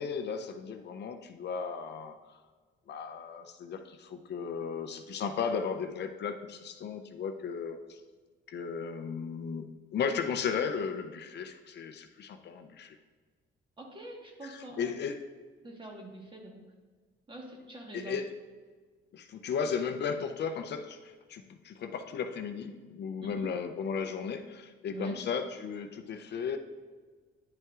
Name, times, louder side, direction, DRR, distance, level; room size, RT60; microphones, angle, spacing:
voice 1, 0.0-2.4 2.9-8.0 8.5-13.0 14.4-15.2 17.9-18.3 19.1-26.6, left 6 dB, 60° left, 8 dB, 0.5 m, -35 dB
voice 2, 13.8-14.9 15.6-16.7 17.3-18.2 23.2-23.5 24.9-25.2, right 2 dB, 25° right, 1 dB, 1.3 m, -44 dB
10.0 x 5.5 x 2.4 m, 1.5 s
cardioid pair, 110°, 20 cm